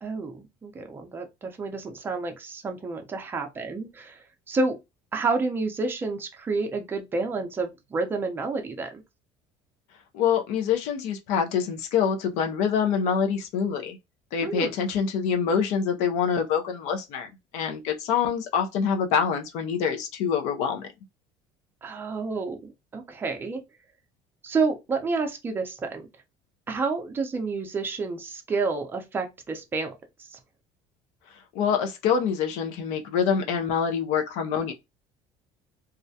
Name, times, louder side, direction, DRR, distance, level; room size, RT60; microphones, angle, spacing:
voice 1, 0.0-4.8 5.1-9.0 14.4-14.7 21.8-23.6 24.4-26.0 26.7-29.9, right 3 dB, 15° right, 0.5 m, -29 dB
voice 2, 10.1-14.0 14.3-20.9 31.5-34.7, left 7 dB, 70° left, 0.5 m, -25 dB
2.3 x 2.1 x 2.6 m
cardioid pair, 155°, 12 cm